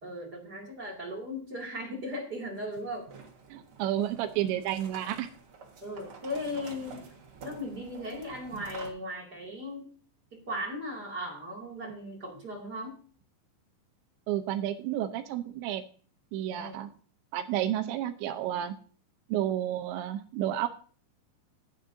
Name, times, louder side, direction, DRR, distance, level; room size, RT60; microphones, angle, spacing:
voice 1, 0.0-3.1 5.8-7.1 7.4-9.9 10.3-13.0 16.5-16.8, left 1 dB, 30° right, -3 dB, 2.1 m, -37 dB
sound 1, 2.4-8.9, right 5 dB, 65° right, 1.3 m, -49 dB
voice 2, 3.5-5.3 14.3-15.8 16.3-16.9 17.3-18.7 19.3-20.7, right 12 dB, 80° right, 7 dB, 3.0 m, -31 dB
15.5 x 8.8 x 2.7 m, 0.42 s
omnidirectional pair, 5.4 m